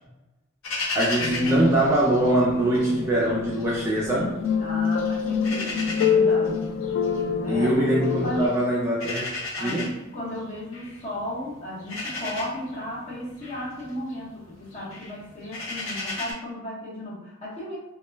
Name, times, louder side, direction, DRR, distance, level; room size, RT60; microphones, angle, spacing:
sound 1, 0.6-2.9 3.2-4.5 4.8-16.3, left 2 dB, 65° left, 0.7 m, -35 dB
voice 1, 0.9-4.4 7.5-9.3 9.6-9.8, right 1 dB, 15° right, -6 dB, 0.3 m, -22 dB
sound 2, 1.2-8.5, left 6 dB, 85° left, 0.3 m, -26 dB
voice 2, 4.6-6.7 7.4-8.6 9.6-17.8, left 1 dB, 30° left, -6 dB, 0.8 m, -35 dB
2.2 x 2.1 x 3.3 m, 0.95 s
head